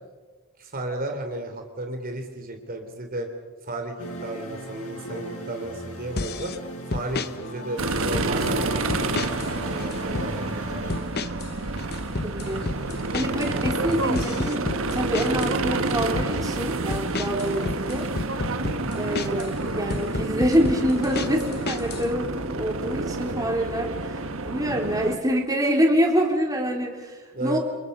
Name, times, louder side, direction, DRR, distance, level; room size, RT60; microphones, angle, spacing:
voice 1, 0.6-3.3 3.6-6.5 6.9-10.9 18.6-19.0 24.7-25.0 27.3-27.6, right 1 dB, 40° right, 4 dB, 3.3 m, -34 dB
sound 1, 4.0-11.0, right 1 dB, 85° left, 6.2 m, -37 dB
sound 2, 6.2-6.6 6.9-7.3 7.9-8.5 8.9-9.5 9.8-10.3 10.9-11.5 11.8-15.5 15.9-16.3 16.9-19.5 19.9-22.1, left 3 dB, 45° left, 1.0 m, -31 dB
sound 3, 7.8-25.2, right 2 dB, 65° right, 1.5 m, -29 dB
voice 2, 12.2-12.7 13.1-14.6 14.9-18.1 18.9-27.6, equal, 15° right, 1 dB, 3.6 m, -26 dB
29.5 x 29.0 x 5.5 m, 1.3 s
head